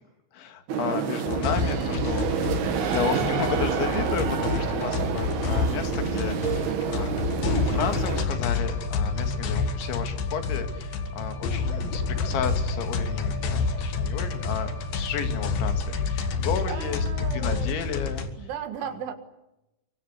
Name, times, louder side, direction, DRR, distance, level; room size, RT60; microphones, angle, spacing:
voice 1, 0.3-2.5 2.9-18.3, left 7 dB, 75° left, 7 dB, 4.4 m, -33 dB
sound 1, 0.7-8.2, right 7 dB, 60° right, 3.7 m, -28 dB
sound 2, 1.3-18.3, left 4 dB, 60° left, 3.1 m, -28 dB
Bowed string instrument, 8.3-16.6, right 2 dB, 10° left, 3.9 m, -45 dB
voice 2, 16.4-17.7 18.4-19.1, right 9 dB, 80° right, 7 dB, 4.2 m, -36 dB
25.0 x 24.0 x 8.2 m, 0.94 s
omnidirectional pair, 5.4 m